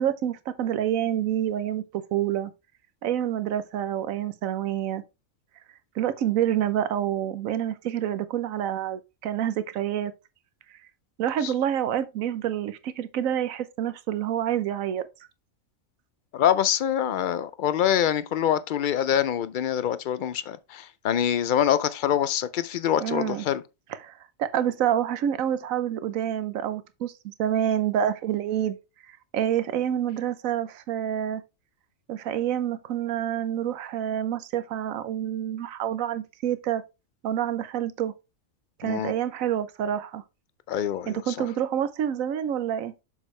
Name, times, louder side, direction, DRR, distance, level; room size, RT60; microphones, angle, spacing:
voice 1, 0.0-2.5 3.0-5.0 6.0-10.1 11.2-15.1 23.0-23.4 24.0-24.1 24.4-28.8 29.3-31.4 32.1-36.8 37.2-38.1 38.8-40.2 41.1-42.9, right 10 dB, 80° right, 1.1 m, -27 dB
voice 2, 16.3-23.6 38.8-39.1 40.7-41.3, left 10 dB, 80° left, 0.4 m, -25 dB
7.1 x 6.3 x 3.2 m
omnidirectional pair, 1.4 m